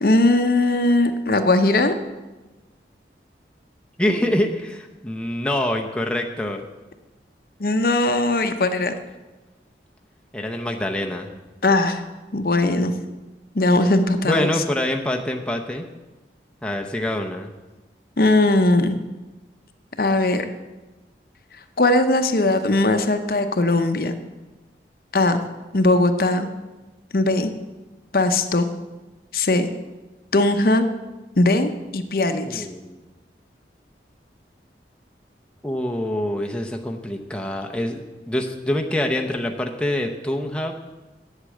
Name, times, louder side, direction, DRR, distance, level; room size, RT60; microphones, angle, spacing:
voice 1, 0.0-1.9 7.6-8.9 11.6-12.0 12.3-12.9 13.5-14.5 18.2-18.9 20.0-20.5 21.8-24.1 25.1-25.4 25.7-26.5 27.1-27.5 28.1-28.7 29.3-29.7 30.3-30.9 31.4-32.7, left 2 dB, 55° left, 8 dB, 0.7 m, -19 dB
voice 2, 4.0-6.6 10.3-11.3 14.2-15.8 16.6-17.5 32.5-33.0 35.6-40.7, left 1 dB, 5° left, 2 dB, 0.7 m, -25 dB
8.2 x 7.4 x 8.6 m, 1.1 s
head